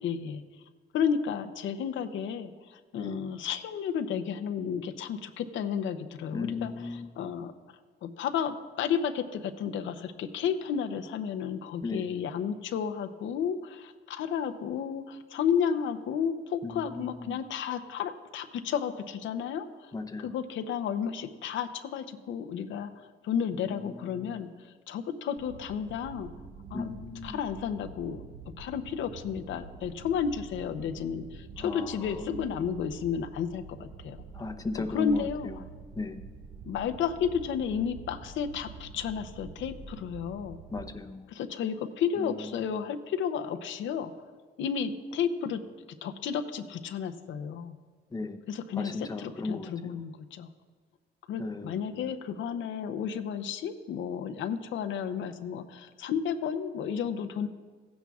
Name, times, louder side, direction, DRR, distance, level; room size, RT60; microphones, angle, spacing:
voice 1, 0.0-0.4 0.9-7.5 8.0-19.9 20.2-24.5 24.9-26.3 26.7-26.9 27.2-28.2 28.6-34.2 34.9-35.5 36.6-40.6 41.3-44.1 44.6-45.6 46.0-47.8 48.5-48.9 49.2-50.5 51.3-57.5, left 7 dB, 75° left, 7 dB, 0.7 m, -32 dB
voice 2, 6.3-7.3 11.8-12.2 16.6-17.4 19.9-20.3 23.6-24.4 26.7-27.4 31.6-32.4 34.3-35.5 36.0-36.2 40.7-41.3 42.2-42.6 48.1-48.4 48.7-50.0 51.4-52.1, left 3 dB, 20° left, 7 dB, 0.7 m, -37 dB
sound 1, 25.4-41.0, right 4 dB, 60° right, 0.8 m, -47 dB
16.0 x 10.0 x 2.4 m, 1.4 s
cardioid pair, 90°, 20 cm